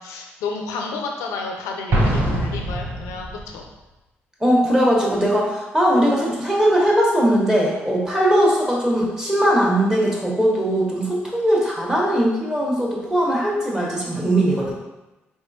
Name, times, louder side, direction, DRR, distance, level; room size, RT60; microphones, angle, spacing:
voice 1, 0.0-3.7, left 4 dB, 85° left, 2 dB, 0.5 m, -31 dB
Explosion, 1.9-3.6, right 1 dB, 50° right, 0.8 m, -23 dB
voice 2, 4.4-14.7, equal, 10° right, -3 dB, 1.2 m, -19 dB
3.6 x 3.2 x 2.7 m, 1.0 s
supercardioid pair, 60°, 5 cm